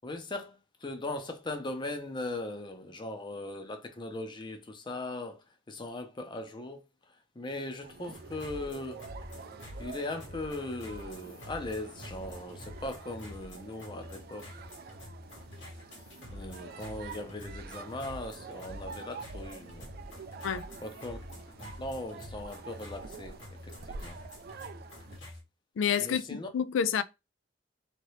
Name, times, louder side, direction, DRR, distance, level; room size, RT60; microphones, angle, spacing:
voice 1, 0.0-9.1 9.4-9.5 9.8-14.5 16.3-19.9 20.8-21.2 21.5-24.2 26.0-26.5, left 2 dB, 25° left, 0.5 m, -39 dB
sound 1, 7.8-25.2, right 5 dB, 55° right, 0.4 m, -48 dB
sound 2, 8.1-25.4, left 1 dB, 70° left, 1.3 m, -47 dB
voice 2, 25.8-27.0, left 7 dB, 85° left, 0.4 m, -29 dB
2.9 x 2.8 x 3.1 m
head